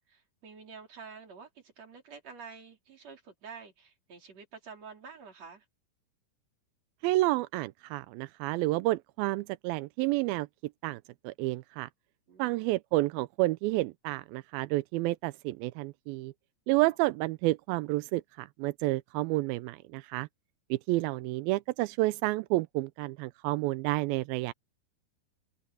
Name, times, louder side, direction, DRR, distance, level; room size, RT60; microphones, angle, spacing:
voice 1, 0.0-5.6 12.3-12.7, right 5 dB, 40° right, 4.7 m, -49 dB
voice 2, 7.0-10.5 10.8-11.9 12.4-16.3 16.7-20.3 20.7-24.5, right 19 dB, 85° right, 2.1 m, -30 dB
omnidirectional pair, 4.8 m